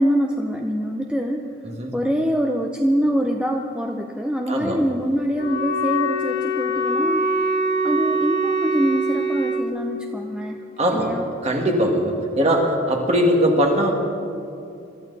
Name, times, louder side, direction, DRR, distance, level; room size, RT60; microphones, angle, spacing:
voice 1, 0.0-1.5 1.9-7.3 7.8-10.6 10.9-11.2, equal, 5° right, 2 dB, 0.6 m, -24 dB
voice 2, 4.5-4.8 10.8-11.1 11.4-13.9, equal, 35° right, 1 dB, 2.0 m, -20 dB
Wind instrument woodwind instrument, 5.3-9.7, right 1 dB, 60° left, 1.7 m, -23 dB
23.0 x 14.0 x 4.1 m, 2.6 s
head